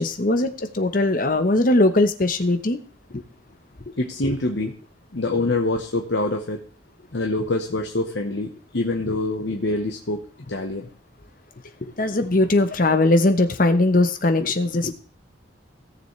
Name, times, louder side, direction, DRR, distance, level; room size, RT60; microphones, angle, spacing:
voice 1, 0.0-2.8 3.1-3.2 3.9-4.0 4.3-4.4 9.1-9.2 12.0-14.9, left 2 dB, 45° left, 9 dB, 0.9 m, -20 dB
voice 2, 4.0-4.7 5.1-6.6 7.1-10.2 10.5-10.9, left 2 dB, 65° left, 2 dB, 1.1 m, -25 dB
17.0 x 7.0 x 3.2 m, 0.39 s
head